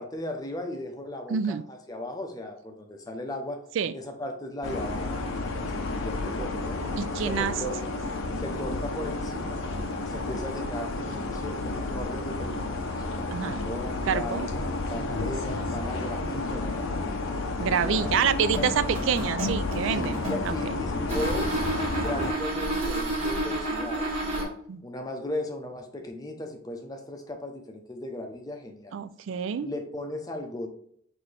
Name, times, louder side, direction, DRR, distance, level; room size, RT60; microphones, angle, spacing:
voice 1, 0.0-3.6 3.9-5.2 5.6-6.8 7.2-7.8 8.4-9.6 10.0-14.5 14.9-17.3 17.8-18.7 19.9-21.6 22.0-24.5 24.8-29.0 29.6-30.7, left 1 dB, 20° left, 4 dB, 0.6 m, -36 dB
voice 2, 1.3-1.6 3.8-3.9 7.0-7.5 13.3-13.6 14.1-14.5 17.6-20.2 20.5-20.6 24.7-24.8 28.9-29.7, right 7 dB, 60° right, 14 dB, 0.3 m, -27 dB
sound 1, 4.6-22.3, left 2 dB, 70° left, 0.6 m, -31 dB
sound 2, 18.4-20.6 21.1-24.4, right 1 dB, 30° right, 1.5 m, -30 dB
5.9 x 2.7 x 3.2 m, 0.65 s
head